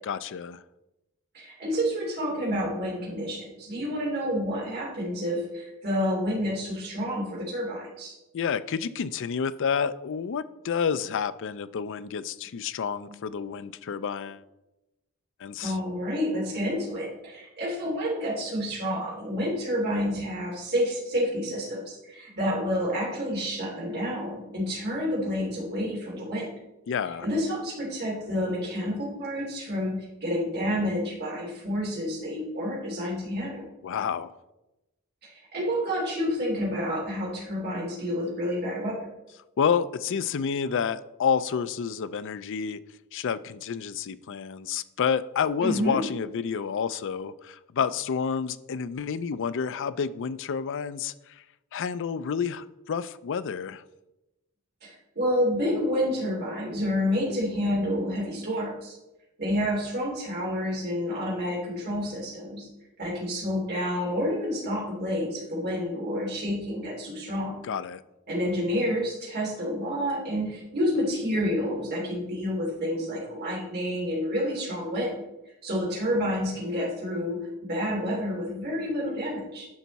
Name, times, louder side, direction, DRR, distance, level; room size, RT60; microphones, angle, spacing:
voice 1, 0.0-0.6 8.3-14.4 15.4-15.8 26.9-27.3 33.8-34.3 39.6-42.8 43.1-51.4 51.7-53.8 67.6-68.0, left 6 dB, 60° left, 14 dB, 0.4 m, -29 dB
voice 2, 1.3-8.1 13.1-13.2 15.6-26.5 27.2-33.6 35.2-39.0 45.6-46.0 54.8-59.0 59.4-62.7 63.0-67.5 68.3-75.1 75.6-79.7, equal, 50° right, -4 dB, 3.0 m, -29 dB
10.5 x 5.6 x 4.1 m, 0.97 s
head